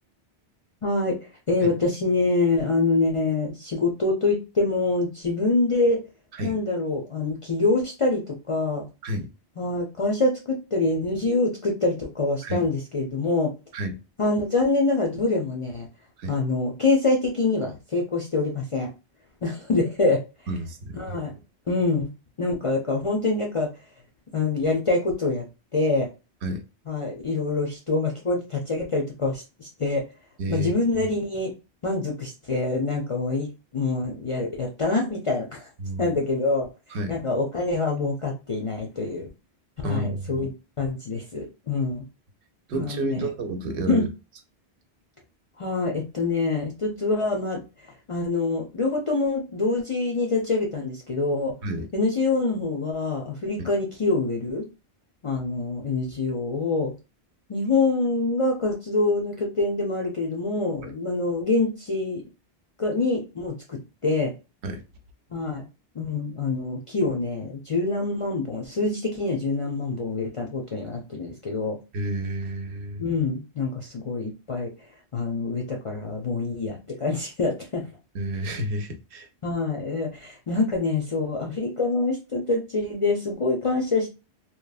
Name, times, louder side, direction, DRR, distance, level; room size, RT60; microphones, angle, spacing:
voice 1, 0.8-6.0 6.4-8.9 9.6-13.5 14.2-15.9 16.3-18.9 19.4-20.2 20.9-21.3 21.7-22.1 22.4-23.7 24.3-25.5 25.7-26.1 26.9-30.1 30.5-31.5 31.8-35.7 36.0-36.7 37.1-39.3 39.8-42.0 42.7-43.3 43.9-44.1 45.6-51.6 51.9-54.7 55.2-56.9 57.5-62.2 62.8-64.3 65.3-65.7 65.9-71.8 73.0-74.7 75.1-77.9 79.4-84.1, left 3 dB, 45° left, 0.4 m, -25 dB
voice 2, 20.5-21.2 26.4-26.6 30.4-30.7 35.8-36.1 36.9-37.2 39.8-40.5 42.7-44.1 51.6-51.9 64.6-64.8 71.9-73.1 78.1-79.3, right 1 dB, 80° right, 0.9 m, -30 dB
3.1 x 2.2 x 2.3 m
omnidirectional pair, 1.1 m